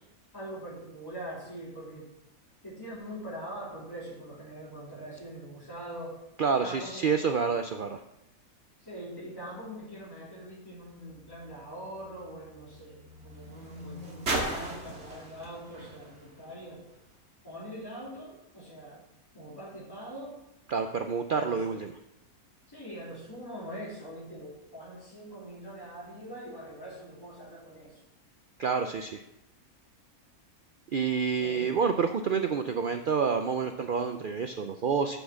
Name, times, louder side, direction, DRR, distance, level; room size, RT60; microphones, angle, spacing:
voice 1, 0.3-2.1 2.6-6.1 6.6-7.1 8.8-16.8 17.4-19.0 19.3-20.4 21.3-21.7 22.7-28.0 31.4-31.8, right 1 dB, 15° left, -7 dB, 3.5 m, -43 dB
voice 2, 6.4-8.0 20.7-21.9 28.6-29.2 30.9-35.2, right 6 dB, 80° right, 7 dB, 0.4 m, -28 dB
sound 1, 10.7-17.2 18.1-18.2, right 1 dB, 50° right, 2.1 m, -39 dB
7.3 x 6.9 x 7.1 m, 0.86 s
omnidirectional pair, 1.6 m